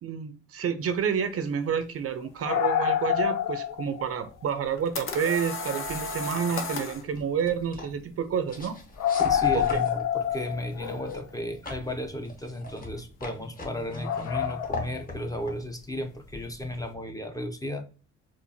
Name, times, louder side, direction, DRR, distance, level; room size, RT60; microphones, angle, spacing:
voice 1, 0.0-8.8 9.5-9.8, right 7 dB, 50° right, 11 dB, 0.5 m, -29 dB
sound 1, 2.2-4.1 4.4-4.6 5.6-5.7 6.3-6.4 6.6-6.7 9.0-11.2 14.0-15.0 16.4-16.5, left 10 dB, 90° left, 0.6 m, -27 dB
sound 2, 4.5-7.0, left 3 dB, 45° left, 0.7 m, -34 dB
sound 3, 5.8-17.0, left 2 dB, 30° left, 1.0 m, -42 dB
voice 2, 9.3-17.9, left 1 dB, 10° left, 6 dB, 0.6 m, -34 dB
4.4 x 2.4 x 2.7 m, 0.36 s
cardioid pair, 90°, 30 cm